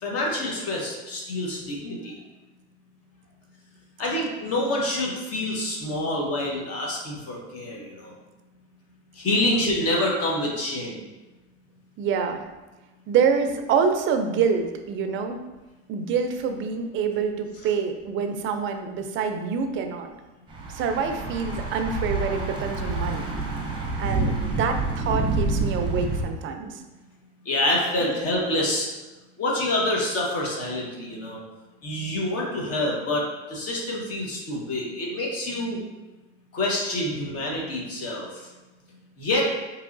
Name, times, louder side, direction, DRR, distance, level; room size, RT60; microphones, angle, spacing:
voice 1, 0.0-2.1 4.0-8.1 9.2-11.0 27.4-28.9 29.4-31.4 31.8-33.2 33.5-35.8 36.5-38.5 39.2-39.5, left 1 dB, 45° left, -2 dB, 1.2 m, -27 dB
voice 2, 12.0-12.4 13.1-15.4 15.9-20.1 20.7-23.3 24.0-26.8 28.0-28.1, right 6 dB, 35° right, 6 dB, 0.4 m, -26 dB
Thunder / Bicycle, 20.5-26.2, right 3 dB, 15° right, 0.8 m, -28 dB
4.6 x 3.0 x 2.5 m, 1.1 s
supercardioid pair, 115°, 34 cm